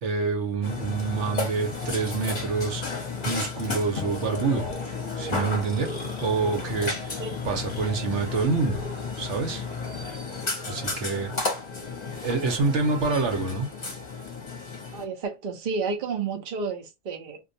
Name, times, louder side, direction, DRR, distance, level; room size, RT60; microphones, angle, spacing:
voice 1, 0.0-4.7 5.2-6.0 6.2-8.8 9.2-9.7 10.7-11.3 12.2-13.7, right 4 dB, 75° right, 1.1 m, -27 dB
Burping eructation, 0.6-15.0, left 4 dB, 40° left, 0.9 m, -33 dB
voice 2, 14.9-17.4, right 4 dB, 50° right, 0.7 m, -31 dB
2.5 x 2.2 x 2.6 m
omnidirectional pair, 1.2 m